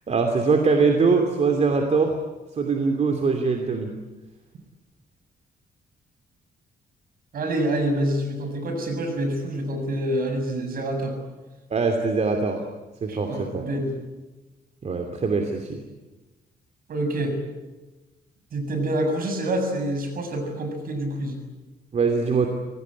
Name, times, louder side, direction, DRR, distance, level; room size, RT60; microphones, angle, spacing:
voice 1, 0.1-2.1 2.6-3.9 11.7-12.6 13.0-13.6 14.8-15.8 21.9-22.5, right 4 dB, 40° right, 4 dB, 2.8 m, -22 dB
voice 2, 7.3-11.2 13.1-13.9 16.9-17.3 18.5-21.4, right 1 dB, 60° right, 5 dB, 7.2 m, -27 dB
25.5 x 18.5 x 9.9 m, 1.2 s
cardioid pair, 120°, 17 cm